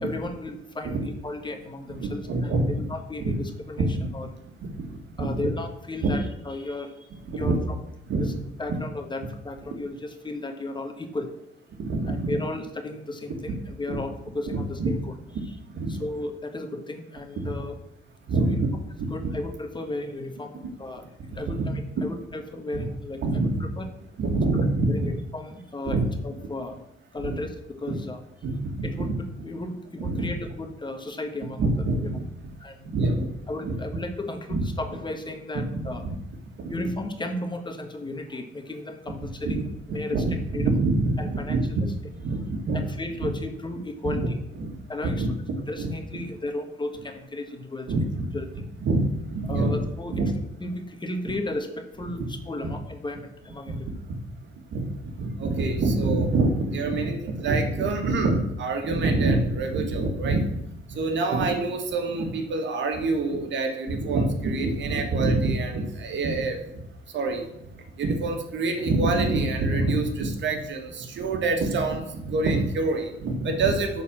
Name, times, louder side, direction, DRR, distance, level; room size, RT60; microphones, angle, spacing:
voice 1, 0.0-3.9 4.1-4.3 5.2-7.0 7.2-7.6 8.2-8.3 8.6-11.3 12.0-15.0 15.9-17.7 18.4-18.6 19.1-21.0 21.3-23.9 24.9-26.8 27.1-28.2 28.8-29.1 29.4-31.6 32.0-32.1 32.6-32.9 33.5-36.0 36.7-39.6 39.9-40.2 40.5-40.7 41.2-41.9 42.7-44.4 44.9-45.3 45.7-47.9 48.3-48.5 49.4-50.2 50.6-53.9, left 2 dB, 25° left, 5 dB, 1.4 m, -34 dB
voice 2, 2.3-2.7 3.2-3.3 4.8-4.9 5.2-5.4 6.0-6.1 7.3-7.6 8.1-8.3 11.8-12.3 13.9-14.0 14.5-14.9 15.3-15.4 15.7-16.0 17.4-17.5 18.3-18.7 19.0-19.3 21.5-21.7 22.7-22.8 23.2-23.6 24.2-25.1 25.8-26.0 27.2-27.4 27.9-28.0 28.4-29.1 30.0-30.2 31.6-32.1 32.9-33.3 33.6-33.7 34.5-34.6 35.5-35.6 36.0-36.1 36.6-36.7 39.4-39.6 40.1-41.7 42.2-42.8 44.0-44.3 44.6-44.7 45.0-45.9 47.9-48.3 48.8-49.8 50.1-50.3 53.7-53.8 54.7-54.9 55.2-60.6 60.9-66.6 67.1-67.4 68.0-74.0, right 3 dB, 65° right, 5 dB, 1.7 m, -26 dB
9.4 x 4.2 x 7.3 m, 0.82 s
cardioid pair, 90°, 20 cm